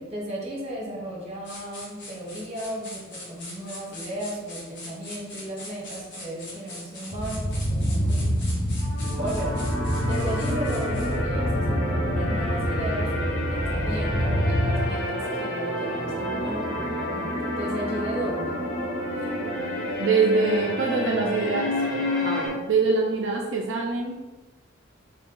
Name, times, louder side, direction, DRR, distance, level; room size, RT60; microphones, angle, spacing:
voice 1, 0.0-8.4 9.2-9.5 10.0-18.6 19.2-19.3, right 1 dB, 30° right, -3 dB, 1.0 m, -35 dB
sound 1, 1.4-11.2, left 2 dB, 60° left, 1.1 m, -42 dB
sound 2, 7.1-15.1, equal, 10° left, 0.3 m, -26 dB
sound 3, 8.8-22.5, left 1 dB, 80° left, 1.0 m, -29 dB
voice 2, 20.0-21.7 22.2-24.1, right 4 dB, 65° right, -1 dB, 0.4 m, -24 dB
3.1 x 2.9 x 3.7 m, 1.1 s
head